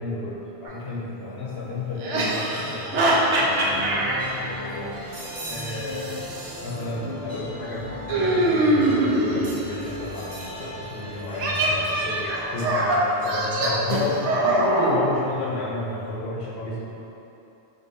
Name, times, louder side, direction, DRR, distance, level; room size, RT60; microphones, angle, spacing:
voice 1, 0.0-5.0 5.4-6.2 6.6-16.9, left 2 dB, 65° left, -5 dB, 0.9 m, -32 dB
sound 1, 0.7-0.8 2.0-4.2 5.5-6.6 8.1-9.6 11.3-15.0, right 1 dB, 85° right, 0.9 m, -23 dB
sound 2, 3.6-12.8, left 1 dB, 50° right, 1.4 m, -38 dB
3.8 x 3.7 x 2.6 m, 3.0 s
omnidirectional pair, 1.2 m